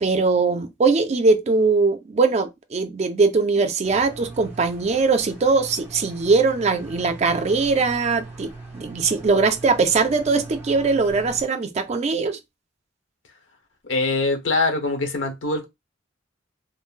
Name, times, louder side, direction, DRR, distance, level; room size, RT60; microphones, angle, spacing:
voice 1, 0.0-12.4, right 4 dB, 35° right, 0.4 m, -21 dB
sound 1, 3.8-11.5, right 3 dB, 10° right, 0.8 m, -40 dB
voice 2, 13.9-15.6, left 3 dB, 85° left, 0.9 m, -23 dB
3.6 x 2.0 x 2.4 m
head